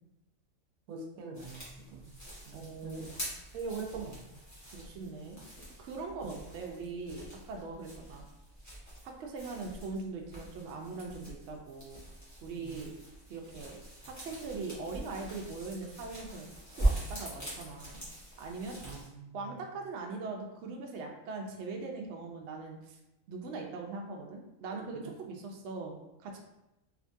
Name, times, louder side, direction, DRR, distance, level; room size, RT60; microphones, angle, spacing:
voice 1, 0.9-2.1 2.5-3.2 3.5-4.2 6.2-6.4 12.6-12.8 18.8-19.5, right 4 dB, 85° right, 1 dB, 1.1 m, -42 dB
sound 1, 1.3-19.1, right 1 dB, 15° left, 1.1 m, -41 dB
voice 2, 2.5-3.1 4.7-5.4 5.8-8.2 9.0-12.0 12.4-12.9 13.3-13.8 14.0-16.5 16.8-18.0 18.4-18.8 19.3-23.0 23.3-26.4, right 3 dB, 65° right, 1 dB, 0.8 m, -41 dB
3.4 x 2.8 x 2.6 m, 0.92 s
omnidirectional pair, 1.4 m